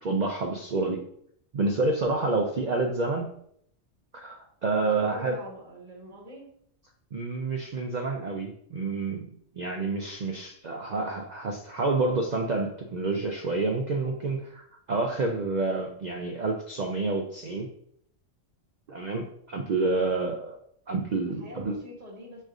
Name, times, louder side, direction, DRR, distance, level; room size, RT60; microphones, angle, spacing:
voice 1, 0.0-1.0 1.5-3.3 4.1-5.3 7.1-9.3 9.6-17.7 18.9-20.6 20.9-21.8, right 3 dB, 85° right, 2 dB, 0.4 m, -28 dB
voice 2, 4.9-6.5 21.2-22.4, equal, 30° right, -2 dB, 1.2 m, -44 dB
6.3 x 3.1 x 2.4 m, 0.67 s
omnidirectional pair, 1.3 m